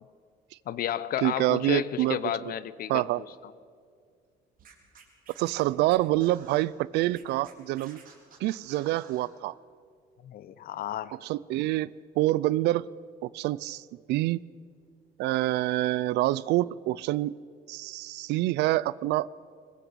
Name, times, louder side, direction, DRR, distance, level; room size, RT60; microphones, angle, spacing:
voice 1, 0.7-3.1 3.4-3.5 10.2-11.2, left 11 dB, 60° left, 16 dB, 0.9 m, -32 dB
voice 2, 1.2-2.5 2.9-3.2 5.4-8.0 8.4-9.5 11.2-12.8 13.2-14.4 15.2-17.3 17.7-19.3, right 16 dB, 85° right, 21 dB, 0.5 m, -27 dB
Scratching (performance technique), 4.6-6.6 7.1-9.3, right 6 dB, 55° right, 4.5 m, -53 dB
22.0 x 20.0 x 6.9 m, 2.1 s
cardioid pair, 110°, 17 cm